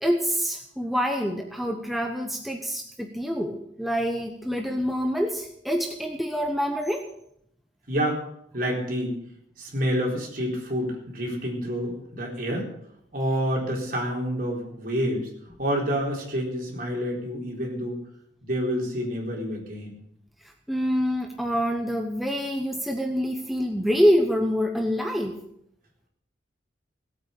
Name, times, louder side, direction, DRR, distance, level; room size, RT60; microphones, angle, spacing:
voice 1, 0.0-7.1 20.7-25.4, equal, ahead, 2 dB, 0.9 m, -26 dB
voice 2, 7.9-8.2 8.5-9.2 9.6-12.7 13.1-15.3 15.6-18.0 18.4-20.0, equal, 50° right, -1 dB, 4.1 m, -28 dB
17.5 x 8.5 x 6.7 m, 0.73 s
head